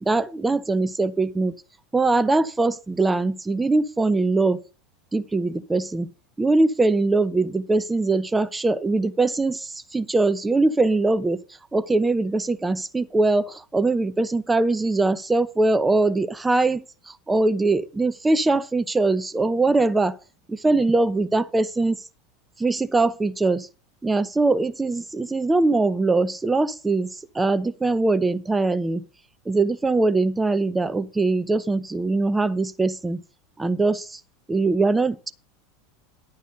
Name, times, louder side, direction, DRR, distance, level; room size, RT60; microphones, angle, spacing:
voice 1, 0.0-1.5 1.9-4.6 5.1-6.1 6.4-11.4 11.7-20.1 20.5-22.0 22.6-23.7 24.0-27.1 27.3-29.0 29.5-33.2 33.6-34.2 34.5-35.3, right 3 dB, 15° right, 0.7 m, -22 dB
11.0 x 6.5 x 5.5 m
hypercardioid pair, 85°, 0 cm